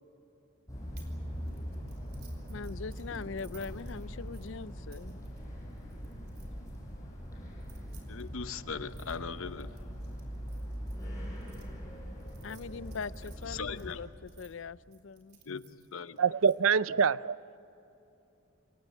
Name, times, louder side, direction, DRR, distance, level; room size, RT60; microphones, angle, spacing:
sound 1, 0.7-14.0, equal, 15° left, 6.5 m, -42 dB
sound 2, 1.0-1.2 1.5-6.8 7.5-11.6 12.2-14.5 14.9-16.5, right 9 dB, 50° right, 4.0 m, -61 dB
voice 1, 2.5-5.3 12.4-15.4, left 5 dB, 60° left, 0.5 m, -41 dB
voice 2, 8.1-9.7 13.5-14.0 15.5-16.2, left 5 dB, 80° left, 0.9 m, -39 dB
voice 3, 16.2-17.4, right 6 dB, 75° right, 0.5 m, -25 dB
28.0 x 18.0 x 9.1 m
head